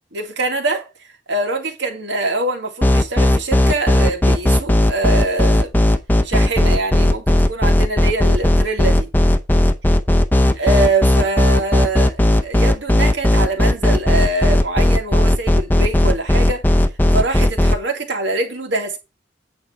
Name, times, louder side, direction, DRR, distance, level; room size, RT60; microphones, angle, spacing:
voice 1, 0.1-0.9 1.3-5.7 6.2-9.1 10.6-16.8 17.1-19.0, right 2 dB, 75° right, 2.2 m, -24 dB
sound 1, 2.8-17.8, left 1 dB, 10° left, 0.7 m, -14 dB
8.8 x 4.5 x 5.5 m
head